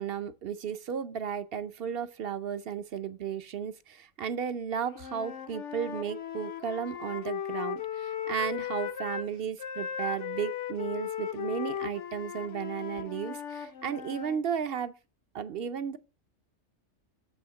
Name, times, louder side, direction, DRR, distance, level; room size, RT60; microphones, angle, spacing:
voice 1, 0.0-14.9 15.3-16.0, right 7 dB, 60° right, 0.7 m, -34 dB
Wind instrument woodwind instrument, 4.9-9.3 9.6-14.4, left 9 dB, 75° left, 1.2 m, -37 dB
7.0 x 5.7 x 6.8 m
omnidirectional pair, 1.3 m